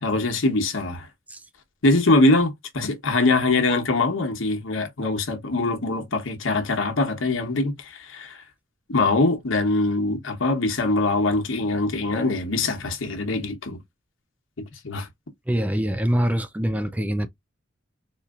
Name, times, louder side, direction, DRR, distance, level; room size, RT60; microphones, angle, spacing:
voice 1, 0.0-1.1 1.8-8.4 8.9-13.8 14.8-15.1, left 2 dB, 80° left, 1.1 m, -23 dB
voice 2, 15.5-17.3, equal, 10° right, 0.3 m, -24 dB
4.2 x 2.6 x 2.4 m
head